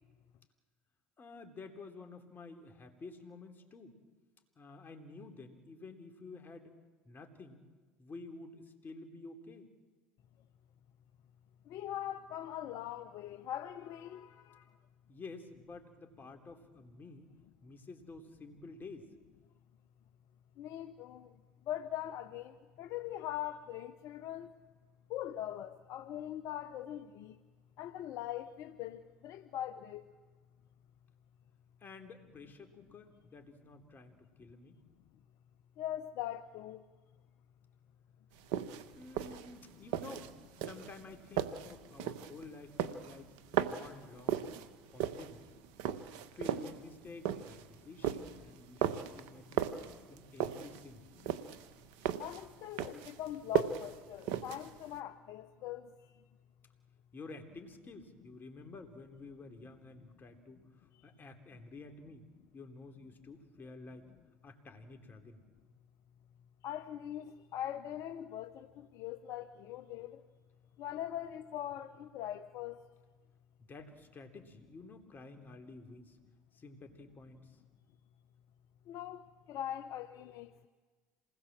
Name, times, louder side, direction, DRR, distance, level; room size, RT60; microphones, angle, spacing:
voice 1, 1.2-4.0 4.6-6.8 7.1-7.6 8.0-9.7 15.1-17.3 17.6-19.1 31.8-34.8 39.0-40.3 40.6-43.3 43.7-44.5 44.9-45.5 46.3-49.8 50.1-51.0 57.1-62.3 62.5-64.1 64.4-65.4 73.6-76.2 76.5-77.7, left 3 dB, 35° left, 3.6 m, -51 dB
voice 2, 11.7-14.6 20.6-21.3 21.7-24.5 25.1-27.4 27.8-30.1 35.8-36.8 39.3-39.4 52.2-55.9 66.6-70.2 70.8-72.8 78.9-79.2 79.5-80.7, left 11 dB, 60° left, 1.0 m, -41 dB
sound 1, 38.4-55.0, right 10 dB, 75° right, 1.3 m, -37 dB
27.5 x 20.0 x 7.6 m
hypercardioid pair, 80°, 6 cm